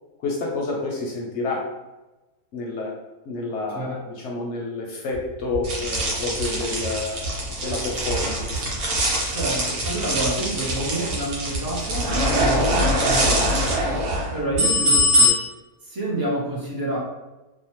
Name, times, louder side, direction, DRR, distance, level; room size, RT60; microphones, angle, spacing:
voice 1, 0.2-1.6 2.5-2.9 3.3-8.7, left 3 dB, 65° left, -1 dB, 0.7 m, -29 dB
sound 1, 5.1-15.0, right 2 dB, 60° right, 0.9 m, -35 dB
sound 2, 5.6-15.3, equal, 80° right, 1.2 m, -23 dB
voice 2, 9.3-13.8 14.3-15.4 15.8-17.0, right 1 dB, 35° right, -6 dB, 0.3 m, -28 dB
2.7 x 2.1 x 2.9 m, 1.1 s
omnidirectional pair, 1.5 m